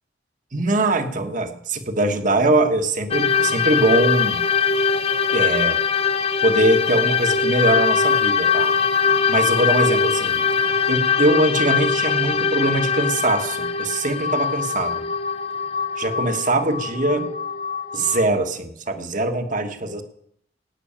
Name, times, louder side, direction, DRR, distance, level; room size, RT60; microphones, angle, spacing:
voice 1, 0.5-4.4 5.3-5.8 6.4-8.7 9.3-10.4 10.9-15.1 16.0-17.3 17.9-20.0, right 2 dB, 45° right, 7 dB, 1.4 m, -22 dB
sound 1, 3.1-18.3, left 6 dB, 35° left, 0.6 m, -22 dB
18.0 x 6.3 x 8.7 m, 0.68 s
head